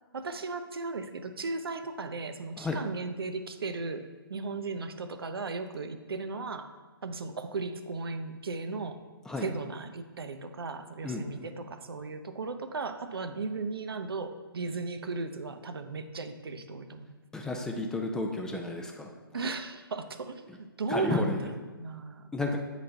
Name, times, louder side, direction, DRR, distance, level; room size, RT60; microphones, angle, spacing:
voice 1, 0.1-4.0 4.3-6.7 7.0-9.0 9.4-17.2 19.3-22.3, right 3 dB, 75° right, 9 dB, 0.6 m, -36 dB
voice 2, 17.3-19.1 20.9-21.4 22.3-22.6, left 2 dB, 5° left, 2 dB, 0.3 m, -32 dB
8.2 x 4.1 x 3.3 m, 1.3 s
figure-of-eight pair, 135°, 13 cm